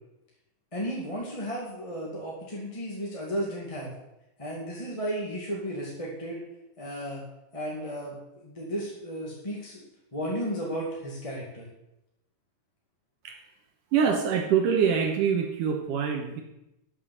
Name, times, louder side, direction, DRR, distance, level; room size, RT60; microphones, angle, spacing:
voice 1, 0.7-3.9 4.4-6.4 6.8-7.2 7.5-11.7, equal, 10° left, -4 dB, 1.8 m, -34 dB
voice 2, 13.9-16.4, right 7 dB, 75° right, 3 dB, 2.7 m, -25 dB
12.5 x 7.1 x 7.8 m, 0.90 s
omnidirectional pair, 3.8 m